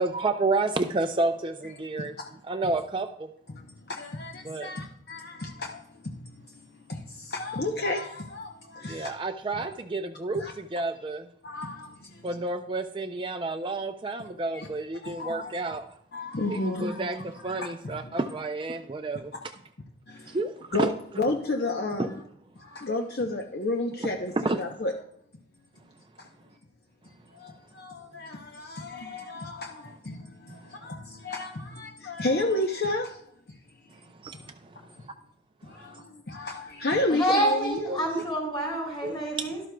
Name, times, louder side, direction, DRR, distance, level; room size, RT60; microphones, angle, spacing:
voice 1, 0.0-2.1 2.5-3.3 4.4-4.7 8.8-11.3 12.2-15.8 16.5-19.3 20.3-20.9 22.0-22.1 24.0-24.6 30.5-30.6 33.9-35.1 35.7-36.0 37.9-38.0 39.0-39.1, right 2 dB, 25° right, 6 dB, 0.4 m, -30 dB
voice 2, 1.9-2.3 2.6-2.7 3.5-9.1 9.6-9.7 10.3-10.5 11.4-12.3 14.5-14.7 15.0-15.5 16.1-17.1 17.4-18.1 20.1-20.4 20.7-20.9 21.2-22.2 22.6-24.9 26.2-26.3 27.3-33.2 33.5-33.6 34.3-34.5 35.6-38.0, left 2 dB, 55° left, 3 dB, 0.7 m, -32 dB
voice 3, 37.1-39.6, right 1 dB, 25° left, -2 dB, 4.4 m, -27 dB
12.0 x 12.0 x 2.3 m, 0.73 s
head